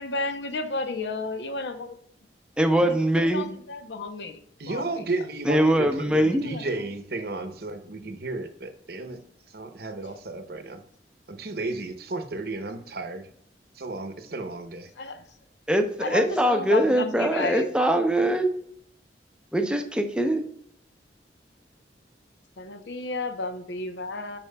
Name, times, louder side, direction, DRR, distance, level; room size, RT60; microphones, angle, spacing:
voice 1, 0.0-2.0 2.8-4.4 4.7-5.0 6.4-6.7 15.0-15.2 16.0-17.7 22.6-24.4, left 3 dB, 80° left, 8 dB, 0.7 m, -32 dB
voice 2, 2.6-3.5 5.4-6.4 15.7-18.5 19.5-20.4, right 1 dB, 5° right, 6 dB, 0.6 m, -22 dB
voice 3, 4.6-9.2 9.5-10.8 11.3-13.3 13.7-14.9, right 2 dB, 60° right, 7 dB, 0.8 m, -33 dB
11.0 x 4.4 x 2.2 m, 0.67 s
head